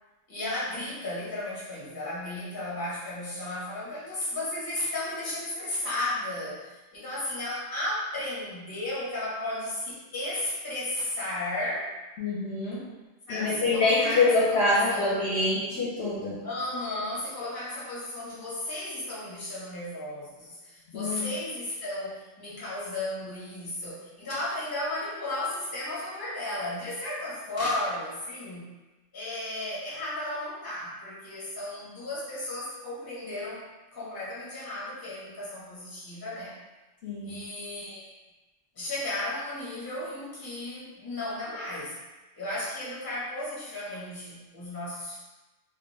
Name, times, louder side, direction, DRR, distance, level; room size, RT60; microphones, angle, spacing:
voice 1, 0.3-11.9 13.3-14.6 14.9-15.3 16.4-28.7 29.1-33.6 33.9-36.6 37.2-38.1 38.7-42.0 42.3-45.2, left 1 dB, 20° left, -8 dB, 0.7 m, -34 dB
voice 2, 12.2-12.8 13.3-16.4 20.9-21.3 37.0-37.4, left 2 dB, 60° left, -8 dB, 0.8 m, -25 dB
2.3 x 2.1 x 3.2 m, 1.1 s
omnidirectional pair, 1.3 m